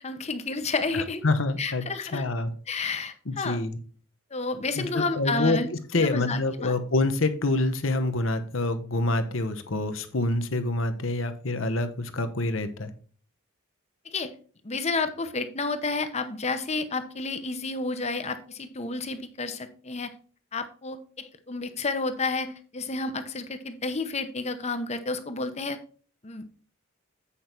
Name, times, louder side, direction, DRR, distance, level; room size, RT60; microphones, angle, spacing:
voice 1, 0.0-1.2 1.6-2.2 2.7-3.6 4.3-5.7 5.9-6.7 14.0-14.3 14.6-20.1 20.5-25.8 26.2-26.5, left 3 dB, 30° left, 9 dB, 0.8 m, -31 dB
voice 2, 1.2-1.8 2.1-2.5 3.3-3.8 4.7-5.6 5.9-12.9, left 2 dB, 65° left, 9 dB, 1.0 m, -26 dB
8.5 x 5.4 x 4.5 m, 0.41 s
head